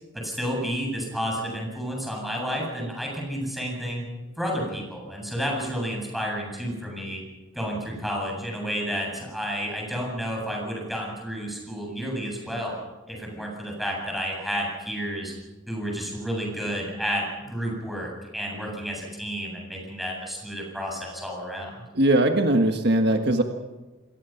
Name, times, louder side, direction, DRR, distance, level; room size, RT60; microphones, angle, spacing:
voice 1, 0.1-4.0 4.4-7.2 7.5-12.8 13.1-15.3 15.7-21.8, equal, ahead, -1 dB, 7.8 m, -31 dB
voice 2, 21.9-23.4, right 1 dB, 55° right, 4 dB, 1.6 m, -20 dB
28.0 x 21.5 x 5.9 m, 1.2 s
head